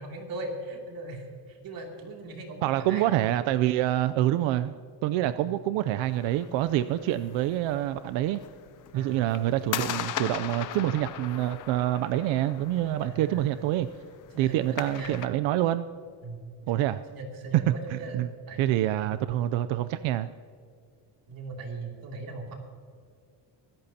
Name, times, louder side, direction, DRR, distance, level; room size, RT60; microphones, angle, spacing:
voice 1, 0.0-3.1 5.2-5.3 8.9-9.5 13.0-13.7 14.3-14.7 14.9-15.2 16.2-16.5 17.1-19.3 21.3-22.5, right 3 dB, 50° right, 0 dB, 2.7 m, -39 dB
voice 2, 2.6-8.4 8.9-13.9 14.4-15.9 16.7-17.0 17.5-18.3 18.6-20.3, right 13 dB, 90° right, 11 dB, 0.6 m, -26 dB
sound 1, 6.0-15.3, left 10 dB, 45° left, 0.7 m, -39 dB
25.0 x 13.5 x 2.8 m, 2.3 s
cardioid pair, 165°, 44 cm